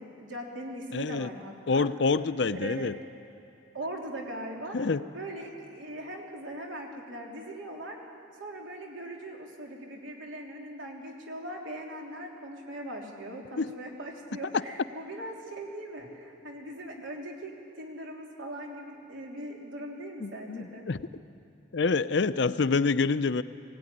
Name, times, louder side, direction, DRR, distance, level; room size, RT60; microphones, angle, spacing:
voice 1, 0.0-1.9 2.5-2.9 3.7-4.8 5.1-8.0 8.4-20.8, right 1 dB, 80° right, -1 dB, 3.4 m, -40 dB
voice 2, 0.9-1.3 1.7-3.0 4.7-5.0 13.6-13.7 14.5-14.6 20.2-21.0 21.7-23.4, left 4 dB, 60° left, 14 dB, 0.5 m, -27 dB
20.5 x 17.5 x 9.9 m, 2.9 s
head